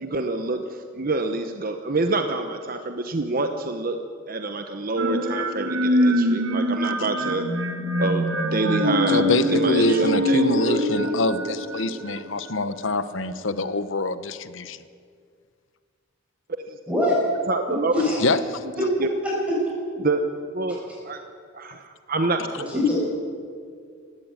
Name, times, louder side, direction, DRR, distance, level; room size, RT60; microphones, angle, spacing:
voice 1, 0.0-4.0 4.3-7.4 8.0-9.2 9.5-10.8 16.7-16.8 17.5-17.9 19.0-19.1 20.0-20.2 20.5-21.2 21.5-22.4, right 3 dB, 45° right, 6 dB, 1.0 m, -27 dB
sound 1, 5.0-12.7, equal, 85° right, 1.7 m, -24 dB
voice 2, 9.1-14.8 18.2-18.4, left 2 dB, 70° left, 13 dB, 1.0 m, -25 dB
voice 3, 16.9-17.2 17.9-18.3 19.2-19.5 20.7-20.8 22.7-23.1, left 2 dB, 5° right, -6 dB, 7.0 m, -23 dB
19.0 x 15.5 x 9.0 m, 2.1 s
head